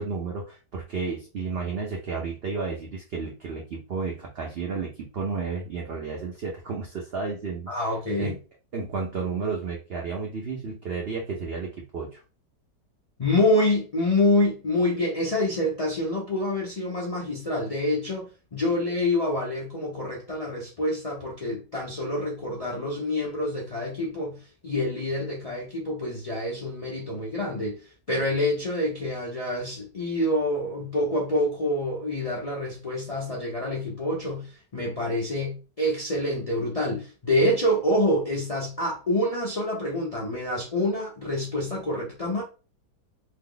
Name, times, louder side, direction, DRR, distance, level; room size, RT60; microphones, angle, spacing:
voice 1, 0.0-7.9 8.2-8.4 8.7-12.2, right 4 dB, 90° right, 0.5 m, -32 dB
voice 2, 7.7-8.4 13.2-42.4, left 1 dB, 70° left, 0.3 m, -27 dB
2.7 x 2.0 x 3.7 m
omnidirectional pair, 1.8 m